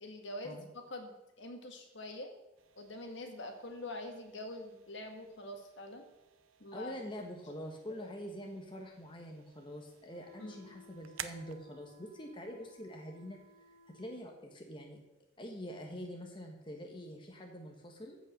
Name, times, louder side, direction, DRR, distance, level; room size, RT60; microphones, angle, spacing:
voice 1, 0.0-2.3 2.8-6.0 6.6-6.9 7.9-8.1 10.4-10.8, left 1 dB, 60° left, 4 dB, 1.8 m, -45 dB
sound 1, 2.6-14.2, right 10 dB, 80° right, 0.7 m, -54 dB
voice 2, 6.7-13.4 13.9-15.0 15.4-18.2, equal, 25° left, 2 dB, 1.2 m, -45 dB
sound 2, 10.0-14.3, left 2 dB, 40° right, 3.2 m, -61 dB
14.5 x 5.5 x 6.5 m, 0.95 s
head